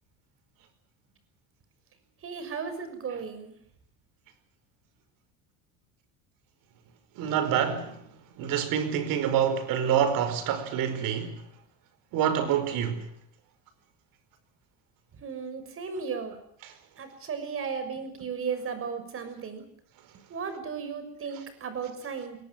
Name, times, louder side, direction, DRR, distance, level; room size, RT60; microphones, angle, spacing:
voice 1, 2.2-3.5 15.2-16.3 17.0-19.6 20.3-22.4, right 6 dB, 35° right, 6.3 m, -35 dB
voice 2, 7.2-8.0 8.4-11.4 12.1-13.1 16.6-16.7, right 8 dB, 65° right, 5.1 m, -27 dB
22.5 x 18.5 x 9.4 m
cardioid pair, 130°, 36 cm